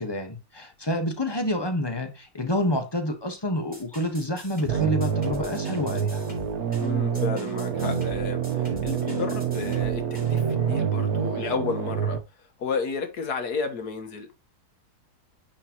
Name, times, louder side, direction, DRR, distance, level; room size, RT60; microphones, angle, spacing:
voice 1, 0.0-6.2, left 1 dB, 15° left, 1.1 m, -28 dB
sound 1, 3.7-10.4, left 1 dB, 5° right, 3.4 m, -44 dB
sound 2, 4.7-12.2, right 7 dB, 70° right, 1.4 m, -27 dB
voice 2, 6.8-12.2 12.6-14.3, left 5 dB, 75° left, 1.9 m, -32 dB
9.8 x 4.4 x 3.0 m
omnidirectional pair, 1.7 m